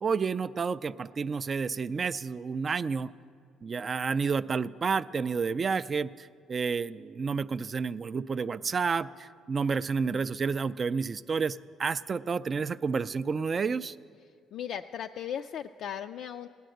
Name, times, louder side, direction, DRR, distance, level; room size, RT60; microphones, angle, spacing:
voice 1, 0.0-3.1 3.6-14.0, right 5 dB, 30° right, 14 dB, 0.3 m, -30 dB
voice 2, 14.5-16.5, left 9 dB, 60° left, 6 dB, 0.3 m, -37 dB
17.0 x 10.0 x 7.7 m, 2.2 s
cardioid pair, 135°, 0 cm